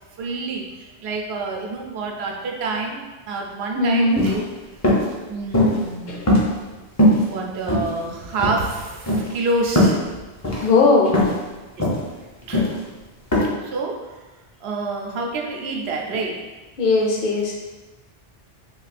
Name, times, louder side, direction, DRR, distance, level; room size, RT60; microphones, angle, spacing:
voice 1, 0.2-4.4 5.3-6.1 7.3-10.0 11.8-11.9 12.4-12.8 13.6-14.1 14.6-16.4, right 3 dB, 80° right, 0 dB, 0.8 m, -28 dB
voice 2, 3.7-4.2 6.1-6.4 10.6-11.3 16.8-17.5, left 3 dB, 65° left, -1 dB, 0.7 m, -18 dB
sound 1, 4.1-4.4 4.8-5.1 5.5-5.9 6.3-6.7 7.0-7.2 7.7-8.1 8.4-8.6 9.1-9.3 9.8-10.0 10.4-10.7 11.1-11.4 11.8-12.0 12.5-12.8 13.3-13.4, left 1 dB, 25° left, 0.4 m, -18 dB
2.5 x 2.3 x 4.0 m, 1.2 s
omnidirectional pair, 1.1 m